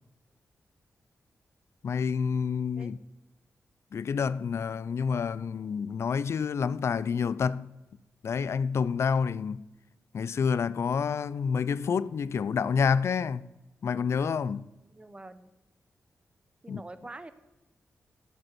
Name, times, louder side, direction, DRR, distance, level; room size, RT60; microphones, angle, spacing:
voice 1, 1.8-3.0 3.9-7.7 8.2-9.6 10.1-13.5 13.8-14.7 16.7-16.8, left 6 dB, 60° left, 0.3 m, -28 dB
voice 2, 14.8-15.5 16.6-17.3, right 2 dB, 20° right, 0.8 m, -45 dB
9.7 x 5.2 x 7.6 m
cardioid pair, 70°, 5 cm